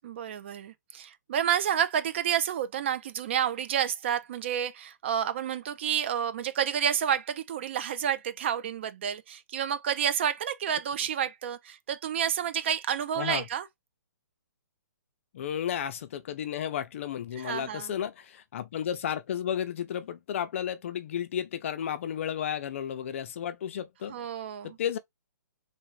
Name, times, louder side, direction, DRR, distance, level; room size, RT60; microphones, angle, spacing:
voice 1, 0.0-13.7 17.4-17.9 24.1-24.8, right 9 dB, 40° right, 0.4 m, -30 dB
voice 2, 15.3-24.2 24.6-25.0, left 9 dB, 45° left, 0.5 m, -33 dB
3.4 x 2.5 x 3.0 m
hypercardioid pair, 160°, 10 cm